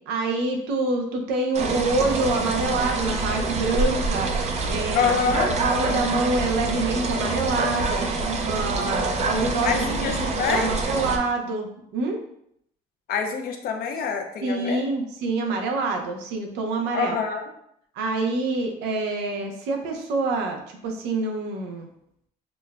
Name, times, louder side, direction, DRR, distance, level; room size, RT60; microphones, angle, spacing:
voice 1, 0.1-4.3 4.7-5.1 5.6-8.1 8.4-9.8 10.2-12.2 14.4-17.2 17.9-21.9, right 3 dB, 85° right, 3 dB, 0.7 m, -26 dB
sound 1, 1.5-11.2, right 3 dB, 40° right, 0.5 m, -26 dB
voice 2, 4.9-5.5 9.6-10.7 13.1-14.8 16.9-17.4, left 6 dB, 60° left, 3 dB, 0.6 m, -25 dB
6.0 x 2.2 x 2.4 m, 0.73 s
cardioid pair, 110°, 17 cm